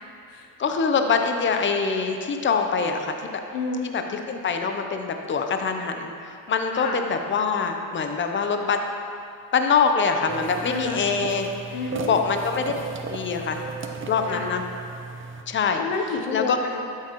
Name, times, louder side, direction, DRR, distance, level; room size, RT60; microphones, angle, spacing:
voice 1, 0.6-3.2 3.9-8.8 9.5-11.5 12.0-12.7 13.1-13.6 14.1-14.6 15.5-15.8 16.3-16.6, left 5 dB, 25° left, 5 dB, 0.8 m, -24 dB
voice 2, 3.5-3.9 6.7-7.0 10.7-11.0 11.7-12.1 14.3-14.5 15.8-16.8, left 4 dB, 90° left, 2 dB, 1.0 m, -30 dB
sound 1, 10.3-15.4, right 4 dB, 30° right, 0.8 m, -35 dB
12.0 x 7.6 x 3.1 m, 2.4 s
supercardioid pair, 90°, 43 cm